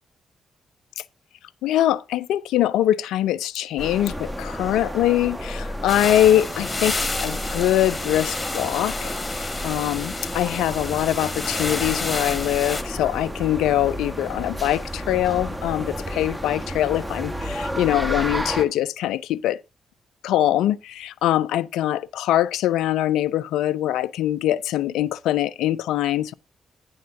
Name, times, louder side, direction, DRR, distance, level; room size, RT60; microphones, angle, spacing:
voice 1, 1.6-19.6 20.2-26.3, left 12 dB, 75° left, 0.3 m, -23 dB
sound 1, 3.8-18.7, equal, 10° right, 1.1 m, -32 dB
sound 2, 5.9-12.8, left 3 dB, 30° left, 1.1 m, -30 dB
9.4 x 3.6 x 5.7 m
hypercardioid pair, 40°, 0 cm